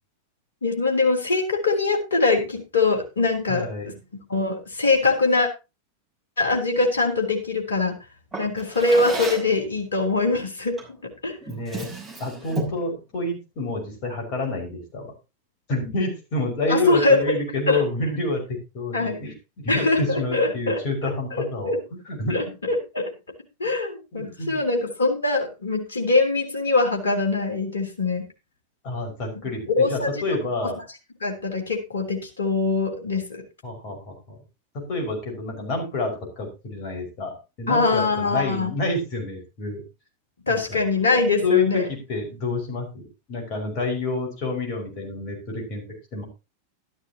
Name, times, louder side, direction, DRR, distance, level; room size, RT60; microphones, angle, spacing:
voice 1, 0.6-3.9 4.3-5.5 6.4-8.0 8.4-11.4 16.7-17.4 17.7-17.8 18.9-19.2 19.7-20.8 21.3-21.8 22.3-23.1 23.6-28.3 29.8-30.2 30.6-30.7 31.2-33.4 37.7-38.8 40.5-41.9, left 3 dB, 70° left, 2 dB, 3.5 m, -23 dB
voice 2, 3.5-3.9 11.5-11.9 12.2-15.1 15.7-19.3 19.6-22.4 24.1-24.6 28.8-30.8 33.6-34.4 34.7-39.8 40.5-40.8 41.4-45.8 46.1-46.2, left 2 dB, 40° left, 2 dB, 5.6 m, -28 dB
Drawer open or close, 8.3-9.6 10.8-11.0 11.4-12.9, right 2 dB, 5° right, 6.4 m, -32 dB
13.0 x 12.0 x 2.9 m, 0.27 s
figure-of-eight pair, 90°, 0 cm